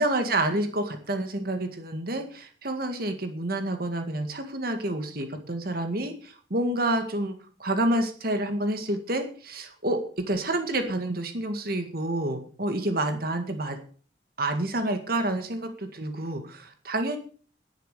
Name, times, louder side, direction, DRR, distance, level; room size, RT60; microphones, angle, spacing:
voice 1, 0.0-13.8 14.4-17.2, right 1 dB, 55° right, 6 dB, 1.9 m, -28 dB
11.0 x 11.0 x 6.8 m, 0.43 s
head